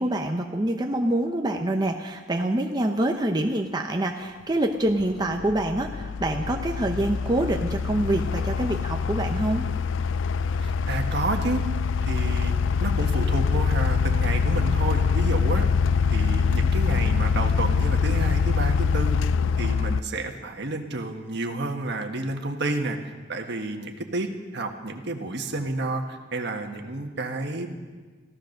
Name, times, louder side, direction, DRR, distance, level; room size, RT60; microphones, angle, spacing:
voice 1, 0.0-9.7, right 1 dB, 20° right, 2 dB, 0.8 m, -26 dB
sound 1, 4.2-4.3 4.9-20.0, left 5 dB, 80° left, 0.4 m, -24 dB
voice 2, 10.6-11.6 12.0-12.5 12.8-15.7 16.1-19.2 19.6-23.0 23.3-27.7, right 2 dB, 60° right, 4 dB, 1.5 m, -30 dB
15.5 x 14.0 x 6.6 m, 1.4 s
head